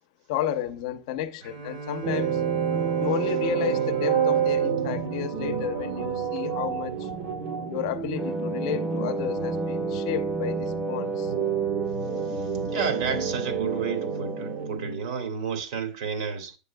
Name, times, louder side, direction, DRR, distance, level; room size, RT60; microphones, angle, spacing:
voice 1, 0.3-2.4 3.0-7.1 7.7-11.3, left 10 dB, 55° left, 0.8 m, -32 dB
Bowed string instrument, 1.4-6.7, right 4 dB, 90° right, 4.0 m, -40 dB
sound 1, 2.0-15.0, right 8 dB, 50° right, 1.2 m, -29 dB
Wind instrument woodwind instrument, 8.2-14.7, right 1 dB, ahead, 0.6 m, -33 dB
voice 2, 12.6-16.6, right 6 dB, 70° right, 2.1 m, -31 dB
8.2 x 7.8 x 2.2 m
supercardioid pair, 150°, 4 cm